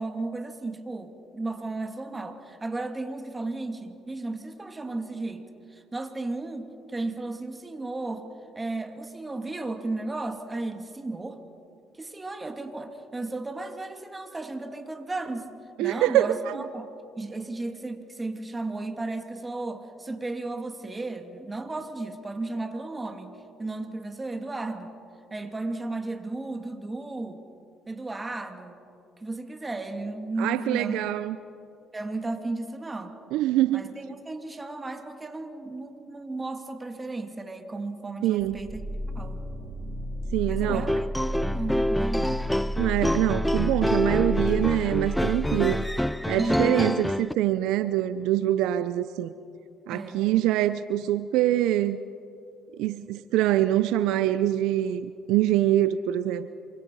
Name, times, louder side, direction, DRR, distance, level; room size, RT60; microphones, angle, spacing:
voice 1, 0.0-8.3 8.5-11.4 12.0-15.5 15.8-16.9 17.2-24.9 25.3-27.4 27.9-28.8 29.2-31.1 31.9-33.1 33.7-38.8 39.1-39.4 40.5-42.5 46.3-46.8 49.9-50.3, right 2 dB, 20° right, 6 dB, 2.6 m, -34 dB
voice 2, 15.8-16.6 30.4-31.4 33.3-33.8 38.2-38.6 40.3-40.9 42.8-45.9 46.3-49.3 49.9-52.0 52.8-56.5, right 13 dB, 80° right, 13 dB, 0.6 m, -24 dB
sound 1, 38.4-46.2, left 1 dB, 45° right, 3.7 m, -32 dB
sound 2, 40.7-47.3, left 1 dB, 5° left, 0.5 m, -27 dB
27.5 x 24.0 x 5.5 m, 2.6 s
supercardioid pair, 65°, 0 cm